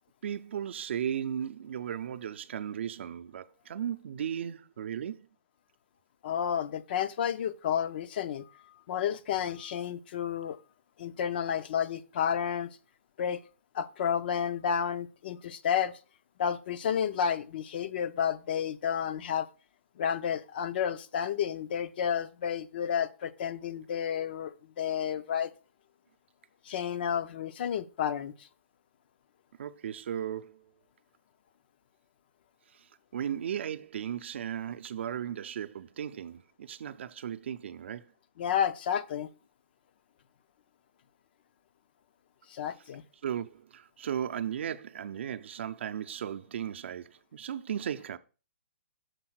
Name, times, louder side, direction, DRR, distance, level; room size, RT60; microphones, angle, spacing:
voice 1, 0.2-5.3 29.6-30.6 32.7-32.8 33.1-38.1 43.2-48.2, right 9 dB, 60° right, 0.5 m, -36 dB
voice 2, 6.2-10.6 11.0-12.7 13.2-13.4 13.7-15.9 16.4-19.5 20.0-25.5 26.7-28.5 38.4-39.3 42.5-43.0, left 8 dB, 45° left, 0.5 m, -31 dB
6.6 x 3.9 x 6.1 m
hypercardioid pair, 150°, 7 cm